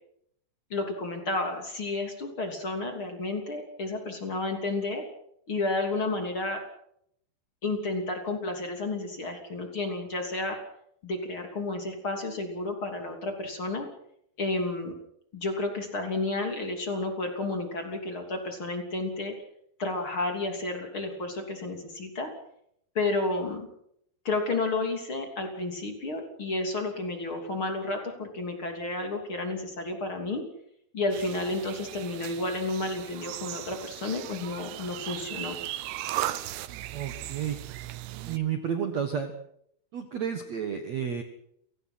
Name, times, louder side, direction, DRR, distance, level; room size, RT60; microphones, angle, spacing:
voice 1, 0.7-5.1 5.5-6.6 7.6-10.6 11.0-13.9 14.4-14.9 15.3-19.4 19.8-22.3 22.9-23.7 24.2-30.4 30.9-35.6, left 2 dB, 35° left, 4 dB, 3.3 m, -31 dB
sound 1, 31.1-38.4, right 14 dB, 75° right, 2.9 m, -37 dB
voice 2, 36.9-37.6 38.2-39.3 39.9-41.2, right 8 dB, 60° right, 7 dB, 2.0 m, -31 dB
30.0 x 18.5 x 5.8 m, 0.73 s
omnidirectional pair, 5.0 m